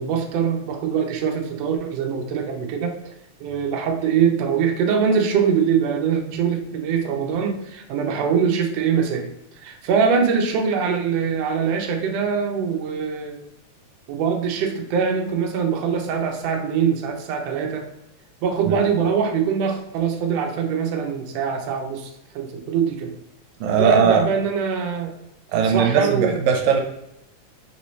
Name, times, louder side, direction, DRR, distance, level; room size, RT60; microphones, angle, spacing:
voice 1, 0.0-2.9 3.4-9.3 9.6-13.4 14.1-17.8 18.4-22.1 22.3-23.1 23.8-25.1 25.5-26.4, right 6 dB, 70° right, 2 dB, 1.7 m, -23 dB
voice 2, 23.6-24.3 25.5-26.8, right 6 dB, 90° right, 3 dB, 2.0 m, -19 dB
5.3 x 2.7 x 3.1 m, 0.83 s
omnidirectional pair, 3.3 m